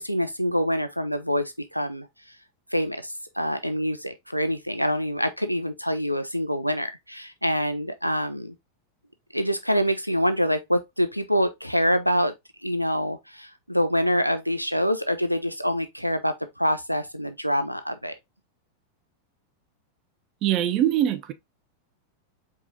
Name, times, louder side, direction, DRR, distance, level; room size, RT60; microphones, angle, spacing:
voice 1, 0.0-2.1 2.7-8.5 9.3-12.3 12.6-18.1, equal, 90° right, 0.5 m, -26 dB
voice 2, 20.4-21.3, right 11 dB, 35° right, 0.6 m, -22 dB
4.8 x 3.7 x 2.5 m
figure-of-eight pair, 90°, 0 cm